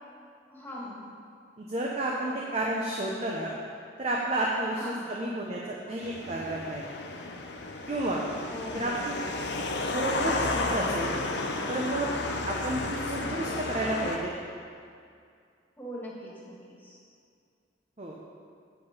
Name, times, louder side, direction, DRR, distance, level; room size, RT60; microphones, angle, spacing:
voice 1, 0.5-1.1 2.3-2.4 4.7-5.1 8.5-9.4 15.8-17.0, left 1 dB, 10° left, -6 dB, 1.9 m, -42 dB
voice 2, 1.6-3.5 4.0-6.8 7.9-8.2 8.7-9.2 9.9-11.1 11.7-12.1 12.4-14.3 18.0-18.2, right 1 dB, 35° right, -3 dB, 0.8 m, -31 dB
sound 1, 6.0-14.2, left 2 dB, 65° left, 0.8 m, -32 dB
8.5 x 7.6 x 5.2 m, 2.3 s
head